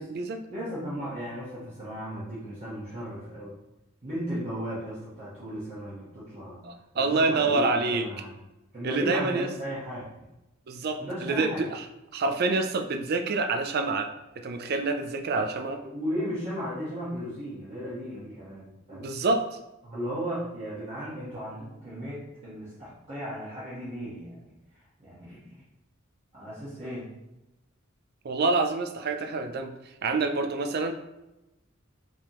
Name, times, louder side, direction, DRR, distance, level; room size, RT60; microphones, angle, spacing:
voice 1, 0.5-3.5 4.0-6.6 6.9-8.3 8.7-10.1 11.0-11.6 15.8-19.1 19.8-24.5 25.0-25.4 26.3-27.1, equal, 35° right, -11 dB, 1.3 m, -35 dB
voice 2, 6.6-8.1 8.8-9.5 10.7-11.9 12.1-14.1 14.4-15.8 18.9-19.5 28.2-29.7 30.0-30.9, right 3 dB, 50° right, 6 dB, 0.4 m, -27 dB
5.1 x 3.4 x 3.0 m, 0.97 s
head